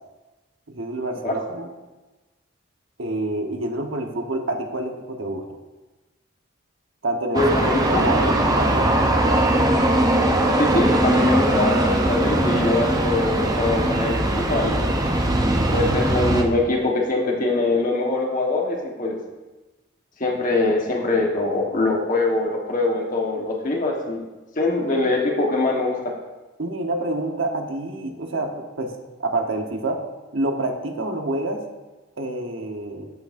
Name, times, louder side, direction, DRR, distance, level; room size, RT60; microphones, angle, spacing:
voice 1, 0.7-1.7 3.0-5.4 7.0-7.5 7.9-9.5 26.6-28.9 29.2-30.0 30.3-31.6 32.2-33.1, right 2 dB, 80° right, 4 dB, 1.0 m, -27 dB
voice 2, 7.3-8.0 10.5-14.9 15.7-19.2 20.2-24.3 24.6-26.1, left 2 dB, 40° left, 0 dB, 1.2 m, -23 dB
sound 1, 7.3-16.4, right 1 dB, 20° right, 0.6 m, -20 dB
15.0 x 6.0 x 2.6 m, 1.2 s
head